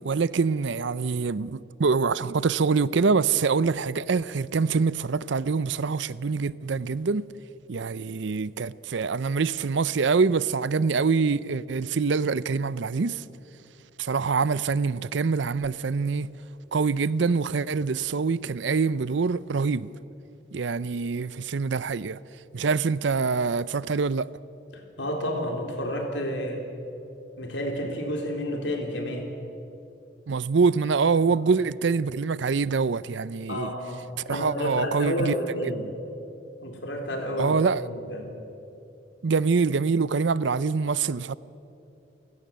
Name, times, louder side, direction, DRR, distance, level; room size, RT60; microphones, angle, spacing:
voice 1, 0.0-7.2 7.7-13.2 14.0-16.3 16.7-19.9 20.5-22.2 22.5-24.3 30.3-33.7 34.3-35.3 37.4-37.8 39.2-41.4, right 4 dB, 70° right, 0.5 m, -25 dB
voice 2, 24.7-26.6 27.4-29.3 31.2-31.4 33.5-35.8 36.6-38.3, equal, 70° left, 3.8 m, -30 dB
29.5 x 16.0 x 7.6 m
head